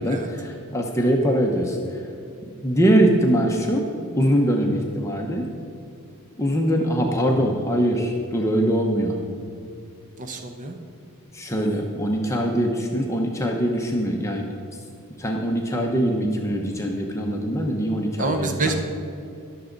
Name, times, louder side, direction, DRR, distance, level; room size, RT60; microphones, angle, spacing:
voice 1, 0.0-2.0 2.6-3.8 4.2-5.5 6.4-9.2 11.3-14.5 15.2-18.8, equal, 15° left, 0 dB, 0.8 m, -22 dB
voice 2, 10.2-10.8 18.2-18.8, right 3 dB, 35° right, 5 dB, 0.8 m, -26 dB
21.0 x 7.0 x 3.9 m, 2.5 s
head